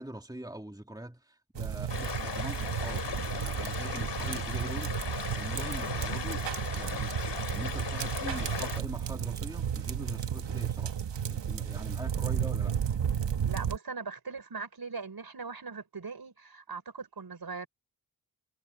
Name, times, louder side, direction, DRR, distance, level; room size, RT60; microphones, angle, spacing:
voice 1, 0.0-11.0 11.3-12.8, right 1 dB, 10° right, 2.7 m, -43 dB
sound 1, 1.5-13.8, right 8 dB, 85° right, 1.4 m, -33 dB
sound 2, 1.9-8.8, left 6 dB, 75° left, 3.2 m, -37 dB
voice 2, 13.4-17.7, right 4 dB, 60° right, 5.5 m, -40 dB
cardioid pair, 50°, 42 cm